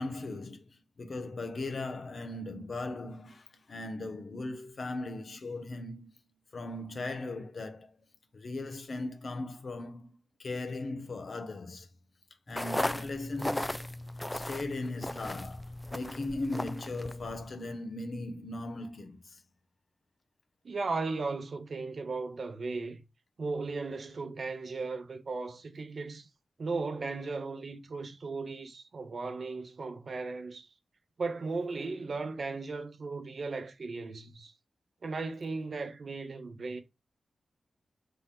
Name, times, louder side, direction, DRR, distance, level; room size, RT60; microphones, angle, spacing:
voice 1, 0.0-6.2 6.5-7.9 8.3-11.9 12.5-13.9 14.3-19.4, left 2 dB, 65° left, 1.0 m, -38 dB
sound 1, 12.5-17.5, left 1 dB, 15° left, 0.3 m, -36 dB
voice 2, 20.6-23.0 23.4-26.3 26.6-30.7 31.2-34.5 35.0-36.8, right 3 dB, 65° right, 0.8 m, -36 dB
4.1 x 3.4 x 3.7 m
cardioid pair, 40°, 0 cm